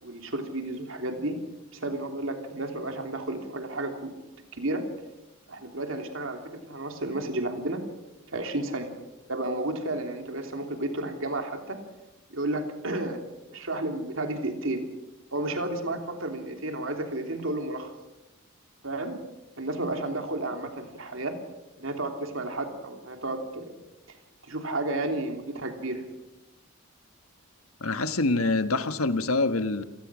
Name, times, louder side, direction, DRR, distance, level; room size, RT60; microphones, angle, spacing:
voice 1, 0.0-1.3 1.7-4.1 4.5-4.8 5.5-7.8 8.3-8.9 9.3-11.8 12.3-13.2 13.5-14.8 15.3-17.9 18.8-19.2 19.6-21.3 21.8-23.8 24.5-26.0, right 2 dB, 65° right, 3.2 m, -32 dB
voice 2, 27.8-29.8, left 3 dB, 90° left, 1.4 m, -25 dB
27.5 x 19.0 x 6.3 m
head